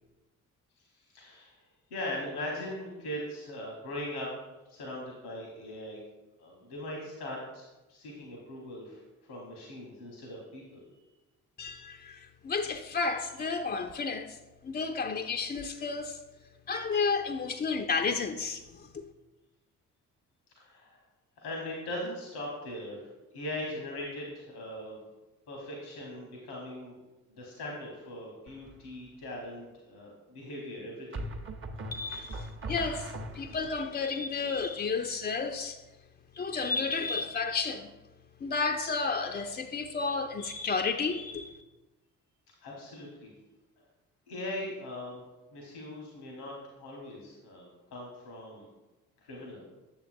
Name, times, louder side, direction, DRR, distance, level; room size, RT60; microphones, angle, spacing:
voice 1, 1.1-1.6 1.9-4.3 4.7-6.0 6.4-9.0 9.3-10.8 20.5-21.0 21.4-25.0 25.5-27.0 27.3-31.2 42.6-43.3 44.3-45.2 45.5-48.7 49.2-49.6, left 1 dB, 85° left, 1.2 m, -40 dB
voice 2, 11.6-14.4 14.6-16.2 16.7-19.0 31.9-35.8 36.4-37.9 38.4-41.6, left 4 dB, 20° left, 0.4 m, -32 dB
sound 1, 28.5-28.9 31.1-33.8, right 1 dB, 30° right, 0.7 m, -40 dB
7.8 x 6.9 x 2.5 m
hypercardioid pair, 40°, 44 cm